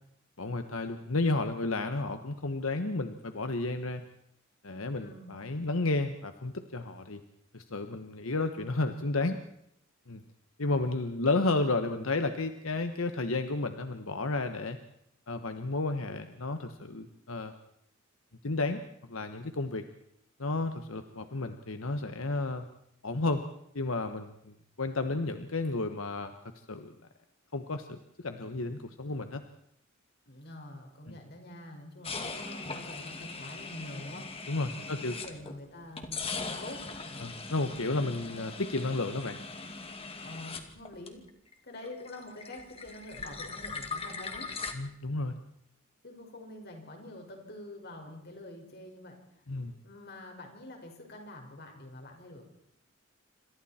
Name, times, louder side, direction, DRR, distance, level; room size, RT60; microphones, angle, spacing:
voice 1, 0.4-4.0 4.6-7.2 7.5-9.4 10.1-10.2 10.6-14.8 15.3-17.5 18.4-18.8 19.1-19.8 20.4-22.6 23.0-23.4 23.7-26.3 26.7-26.9 27.5-29.4 31.1-31.2 34.5-35.1 37.2-39.4 44.7-45.3 49.5-49.7, left 2 dB, 90° left, 7 dB, 1.3 m, -32 dB
voice 2, 5.0-5.4 30.3-34.3 34.8-37.3 40.2-41.2 41.6-44.5 46.0-49.4 49.8-52.4, left 1 dB, 55° left, 2 dB, 5.5 m, -46 dB
sound 1, 32.0-35.6 36.0-41.5 41.8-44.7, left 4 dB, 30° left, 2.3 m, -40 dB
27.5 x 26.0 x 4.4 m, 0.75 s
head